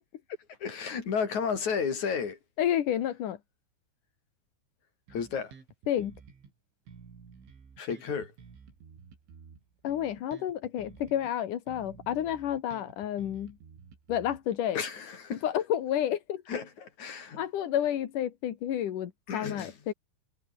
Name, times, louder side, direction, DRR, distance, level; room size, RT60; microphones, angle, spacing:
voice 1, 0.6-2.4 5.1-5.5 7.8-8.3 14.7-15.4 16.5-17.4 19.3-19.7, left 6 dB, 40° left, 4.5 m, -32 dB
voice 2, 2.6-3.4 5.9-6.1 9.8-13.5 14.1-14.8 15.4-16.4 17.4-19.9, left 10 dB, 60° left, 2.4 m, -30 dB
Bass guitar, 5.1-6.5 6.9-11.3 11.7-14.7, right 6 dB, 70° right, 8.0 m, -52 dB
omnidirectional pair, 5.6 m